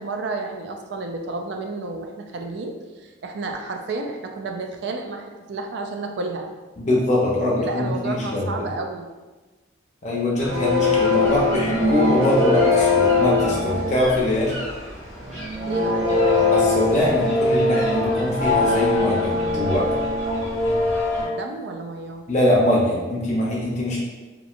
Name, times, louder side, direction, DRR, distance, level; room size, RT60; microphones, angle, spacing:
voice 1, 0.0-6.5 7.3-9.1 15.7-16.1 21.2-22.3, right 3 dB, 55° right, 3 dB, 0.3 m, -31 dB
voice 2, 6.8-8.5 10.0-14.6 16.5-19.9 22.3-24.0, left 1 dB, 35° left, -5 dB, 0.6 m, -22 dB
sound 1, 10.4-21.2, left 3 dB, 75° right, 1.4 m, -22 dB
2.9 x 2.5 x 2.4 m, 1.2 s
head